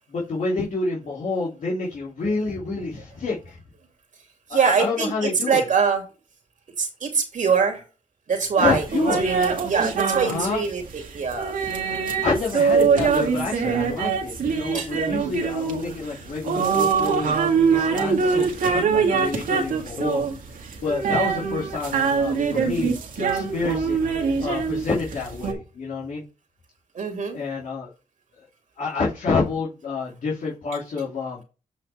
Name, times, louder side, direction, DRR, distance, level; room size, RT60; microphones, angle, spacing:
voice 1, 0.1-3.6 4.5-5.6 8.6-9.2 10.2-10.6 12.1-20.4 20.8-24.0 24.4-26.2 27.3-27.9 28.8-31.4, left 4 dB, 70° left, 2.9 m, -28 dB
voice 2, 4.5-6.0 6.8-7.8 8.3-8.8 9.2-11.5 14.7-14.9 26.9-27.4, right 5 dB, 65° right, 2.6 m, -23 dB
sound 1, 8.6-25.5, right 5 dB, 90° right, 1.9 m, -24 dB
8.4 x 5.8 x 3.5 m
cardioid pair, 85°, 14 cm